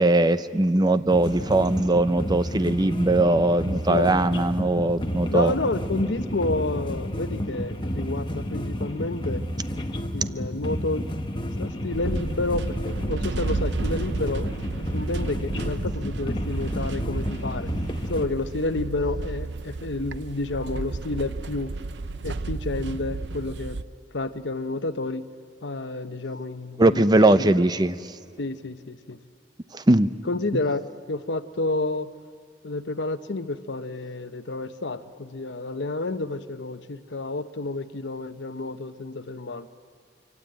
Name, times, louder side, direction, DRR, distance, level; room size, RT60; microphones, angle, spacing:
voice 1, 0.0-5.5 26.8-28.0 29.7-30.1, right 2 dB, 25° right, 13 dB, 0.7 m, -20 dB
sound 1, 1.1-18.3, equal, 25° left, 1.3 m, -31 dB
voice 2, 3.9-4.3 5.3-9.4 10.1-11.0 11.6-17.7 18.1-21.7 22.2-23.8 24.1-25.3 25.6-27.1 27.4-27.6 28.4-29.2 30.3-32.1 32.6-39.7, left 2 dB, 80° left, 11 dB, 0.9 m, -30 dB
sound 2, 11.9-23.8, right 3 dB, 75° right, 0.7 m, -32 dB
24.5 x 24.5 x 8.9 m, 2.3 s
head